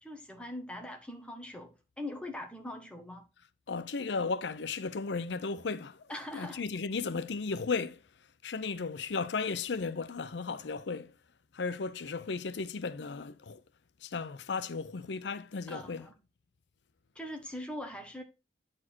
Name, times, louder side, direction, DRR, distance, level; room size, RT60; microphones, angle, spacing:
voice 1, 0.0-3.2 6.1-6.6 15.7-16.1 17.1-18.2, left 1 dB, 5° left, 1.3 m, -42 dB
voice 2, 3.7-6.0 6.3-8.0 8.4-11.1 11.5-13.6 14.0-16.1, left 4 dB, 85° left, 0.6 m, -35 dB
9.8 x 4.4 x 4.4 m
head